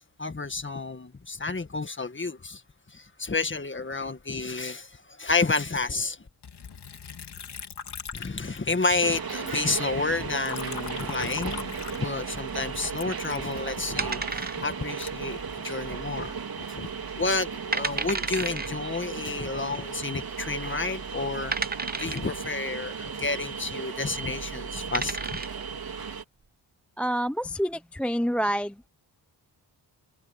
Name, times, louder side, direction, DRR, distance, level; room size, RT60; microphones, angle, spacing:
voice 1, 0.2-2.6 2.9-6.2 8.1-16.9 17.1-21.5 22.0-25.4, left 3 dB, 25° left, 1.8 m, -30 dB
Liquid, 6.4-9.0 9.3-12.5 12.9-16.0 16.5-17.1, left 6 dB, 65° left, 3.6 m, -42 dB
sound 1, 9.0-26.2, right 6 dB, 55° right, 3.0 m, -35 dB
sound 2, 14.0-14.9 15.2-15.3 15.9-16.3 16.7-16.8 17.4-17.5 17.7-18.7 19.8-19.9 20.6-20.7 21.5-22.3 24.2-24.4 24.7-25.6, right 4 dB, 20° right, 0.8 m, -31 dB
voice 2, 27.0-28.8, equal, 5° left, 0.5 m, -27 dB
cardioid pair, 85°, 43 cm